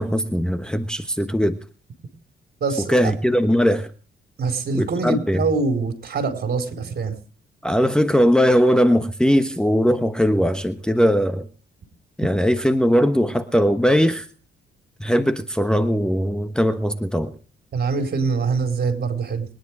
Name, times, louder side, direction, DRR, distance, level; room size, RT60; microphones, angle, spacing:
voice 1, 0.0-1.6 2.9-3.9 4.8-5.4 7.6-11.5 12.2-14.3 15.0-17.4, equal, 5° left, 8 dB, 1.2 m, -19 dB
voice 2, 2.6-3.1 4.4-7.1 17.7-19.4, right 4 dB, 50° right, 7 dB, 4.6 m, -24 dB
22.5 x 10.5 x 4.8 m, 0.38 s
cardioid pair, 90°, 20 cm